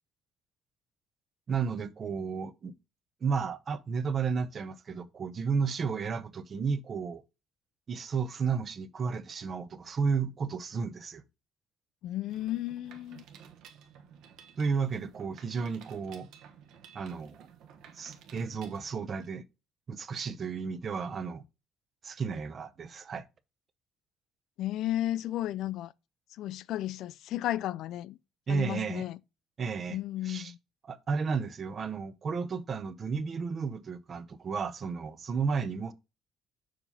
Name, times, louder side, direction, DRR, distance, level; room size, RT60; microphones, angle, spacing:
voice 1, 1.5-2.7 3.2-7.2 7.9-11.2 14.6-16.3 16.9-17.5 17.9-19.4 19.9-21.4 22.0-23.3 28.5-29.0 29.6-30.0 30.2-30.5 30.8-35.9, right 5 dB, 30° right, 0.6 m, -33 dB
voice 2, 12.0-13.2 24.6-25.9 26.4-28.2 28.5-29.2 29.9-30.6, left 14 dB, 65° left, 0.3 m, -33 dB
Mechanisms, 12.3-19.3, right 8 dB, 75° right, 1.1 m, -54 dB
7.1 x 2.9 x 5.5 m
cardioid pair, 160°, 0 cm